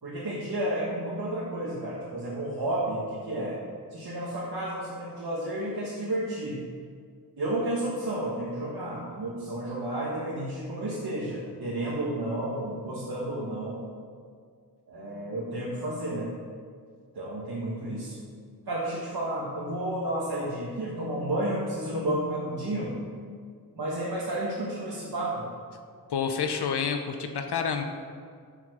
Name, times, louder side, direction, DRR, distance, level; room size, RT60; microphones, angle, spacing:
voice 1, 0.0-3.6 3.9-6.6 7.4-13.8 14.9-16.3 17.1-18.2 18.7-22.9 23.7-25.5, right 1 dB, 65° right, -6 dB, 1.7 m, -31 dB
voice 2, 26.1-27.8, left 6 dB, 75° left, 6 dB, 0.8 m, -28 dB
7.5 x 7.5 x 6.2 m, 2.1 s
wide cardioid pair, 85°, 40 cm